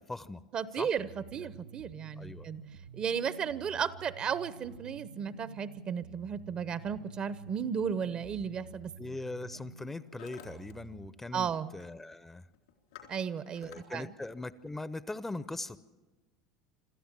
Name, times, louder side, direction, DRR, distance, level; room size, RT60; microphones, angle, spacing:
voice 1, 0.0-0.4 0.8-0.9 2.2-2.5 9.0-12.4 13.6-15.8, left 2 dB, 10° left, 16 dB, 0.7 m, -40 dB
voice 2, 0.5-2.6 2.9-8.9 11.3-11.7 13.1-14.1, right 7 dB, 40° right, 16 dB, 0.9 m, -34 dB
sound 1, 1.0-11.1, right 6 dB, 75° right, 0.7 m, -51 dB
Hammer, 8.2-8.4 9.2-9.5 9.8-10.7 11.0-11.5 11.8-12.1 12.5-13.8, left 10 dB, 75° left, 3.6 m, -53 dB
26.5 x 13.5 x 7.5 m, 1.2 s
hypercardioid pair, 75°, 2 cm